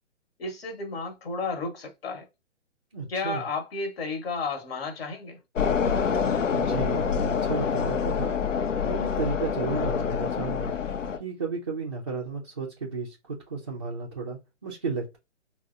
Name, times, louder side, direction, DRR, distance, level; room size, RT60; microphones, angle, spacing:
voice 1, 0.4-2.3 3.1-5.4, left 3 dB, 55° left, 1.0 m, -32 dB
voice 2, 2.9-3.4 6.5-10.7 11.2-15.2, right 4 dB, 25° right, 0.3 m, -33 dB
sound 1, 5.6-11.2, left 6 dB, 90° left, 0.6 m, -26 dB
4.2 x 2.0 x 2.4 m
hypercardioid pair, 140°, 36 cm